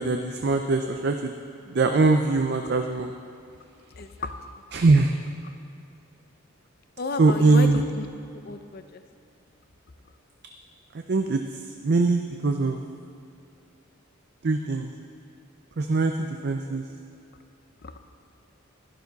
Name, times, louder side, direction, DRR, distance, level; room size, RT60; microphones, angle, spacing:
voice 1, 0.0-1.3 1.7-3.1 4.7-5.2 7.2-7.8 10.9-12.8 14.4-14.9 15.8-16.9, right 3 dB, 50° right, 5 dB, 0.5 m, -22 dB
voice 2, 4.0-4.3 7.0-8.1 8.3-9.0 17.8-17.9, left 3 dB, 45° left, 8 dB, 0.6 m, -33 dB
12.0 x 11.5 x 4.0 m, 2.6 s
head